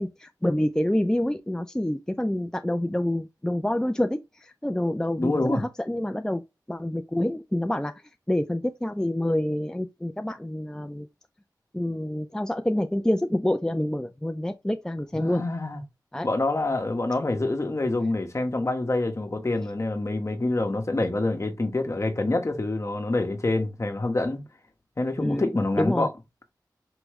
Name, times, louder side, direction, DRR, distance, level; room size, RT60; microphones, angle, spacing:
voice 1, 0.0-6.4 6.7-7.9 8.3-11.1 11.7-15.4 16.1-16.3 25.2-25.5 25.8-26.1, left 1 dB, 10° left, 0.4 m, -27 dB
voice 2, 5.2-5.6 15.2-15.8 16.2-24.4 25.0-26.1, left 2 dB, 40° left, 1.1 m, -26 dB
4.8 x 3.0 x 3.0 m
wide cardioid pair, 55°, 7 cm